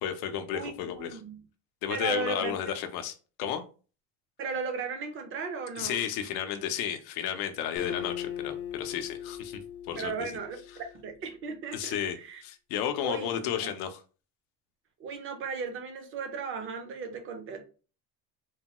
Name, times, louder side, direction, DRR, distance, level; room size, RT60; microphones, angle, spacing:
voice 1, 0.0-1.2 1.8-3.6 5.8-9.6 9.9-10.3 11.7-12.2 12.4-14.0, left 9 dB, 80° left, 0.6 m, -33 dB
voice 2, 0.5-1.4 1.9-2.6 4.4-6.1 9.9-12.4 13.0-13.7 15.0-17.6, right 5 dB, 30° right, 0.5 m, -36 dB
Acoustic guitar, 7.8-11.2, left 9 dB, 35° left, 0.4 m, -39 dB
3.0 x 2.2 x 2.9 m
cardioid pair, 165°, 39 cm